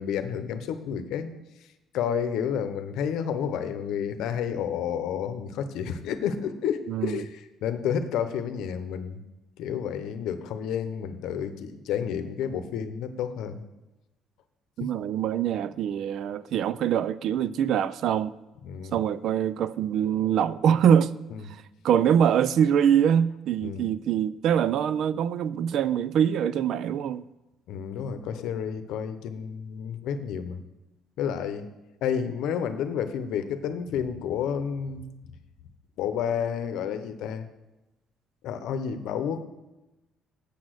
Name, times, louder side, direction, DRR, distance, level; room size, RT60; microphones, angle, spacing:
voice 1, 0.0-1.3 1.9-9.2 9.6-13.6 14.8-14.9 18.6-19.0 21.3-21.4 23.6-23.8 27.7-30.6 31.2-31.7 32.0-35.1 36.0-37.5 38.4-39.4, left 8 dB, 70° left, 0.8 m, -30 dB
voice 2, 6.9-7.2 14.8-18.4 18.9-21.1 21.8-27.2, right 9 dB, 55° right, 0.3 m, -24 dB
8.4 x 6.2 x 6.4 m
cardioid pair, 165°, 0 cm